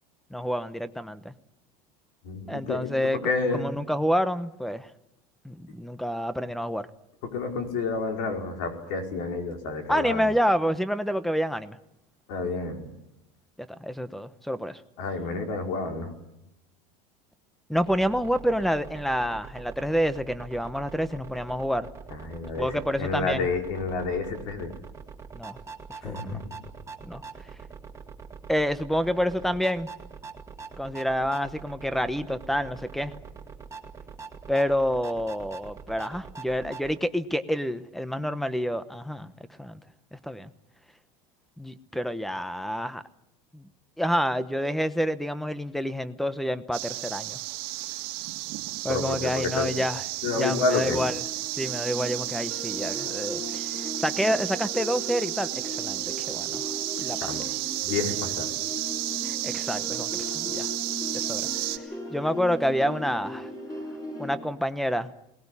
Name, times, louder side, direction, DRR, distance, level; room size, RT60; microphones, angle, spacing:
voice 1, 0.3-1.3 2.5-3.2 3.5-4.9 5.4-6.9 9.9-11.8 13.6-14.8 17.7-21.9 22.6-23.5 25.3-25.6 26.0-26.4 27.0-27.2 28.5-29.9 30.8-33.1 34.5-39.3 39.6-39.8 40.1-40.5 41.6-43.0 43.5-43.7 44.0-47.4 48.8-50.0 50.4-51.1 51.6-56.7 57.0-57.3 59.2-60.7 61.1-61.5 62.1-63.5 64.2-65.1, equal, ahead, 14 dB, 0.9 m, -28 dB
voice 2, 2.2-3.6 7.2-10.3 12.3-12.9 15.0-16.1 22.1-24.7 26.0-26.6 48.9-49.7 50.2-51.0 57.2-57.5 57.8-58.5, left 4 dB, 75° left, 4 dB, 5.0 m, -30 dB
sound 1, 17.7-37.0, right 5 dB, 15° right, 2.0 m, -44 dB
sound 2, 46.7-61.8, right 19 dB, 65° right, 1.8 m, -32 dB
sound 3, 50.3-64.4, left 2 dB, 20° left, 7.7 m, -38 dB
22.0 x 19.0 x 9.9 m, 0.85 s
cardioid pair, 145°, 17 cm